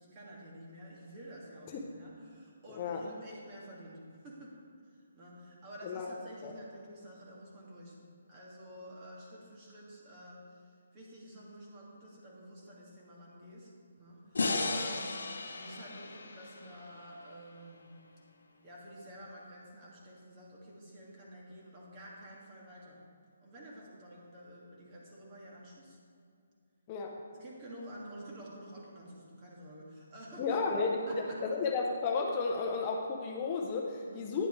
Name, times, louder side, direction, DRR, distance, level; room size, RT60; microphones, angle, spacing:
voice 1, 0.0-4.6 4.9-7.9 8.3-13.7 14.0-15.2 15.5-17.9 18.6-23.0 23.4-26.0 27.3-30.6 31.1-31.4 34.0-34.4, right 1 dB, 30° right, -4 dB, 2.2 m, -50 dB
voice 2, 2.7-3.1 5.8-6.1 6.4-6.5 26.9-27.2 30.4-34.5, left 4 dB, 30° left, 0 dB, 0.7 m, -33 dB
sound 1, 14.3-17.6, left 3 dB, 80° left, 0.9 m, -35 dB
9.8 x 7.9 x 3.3 m, 2.3 s
hypercardioid pair, 150°, 0 cm